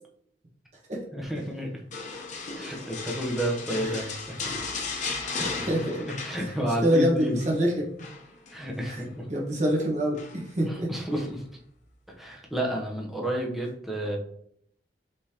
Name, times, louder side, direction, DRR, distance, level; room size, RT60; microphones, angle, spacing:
voice 1, 1.1-1.8 2.6-4.5 5.2-5.7 6.2-7.4 8.5-9.3 10.9-11.5 12.1-14.2, right 1 dB, ahead, -1 dB, 0.8 m, -31 dB
sound 1, 1.9-6.9 7.2-7.5 8.0-9.0 10.1-10.6 11.1-11.3, left 4 dB, 45° left, 0.8 m, -36 dB
voice 2, 3.7-4.1 5.4-6.0 6.4-6.5 6.8-7.9 8.9-9.0 9.3-10.9, equal, 40° right, -3 dB, 1.3 m, -26 dB
5.3 x 3.5 x 2.9 m, 0.68 s
head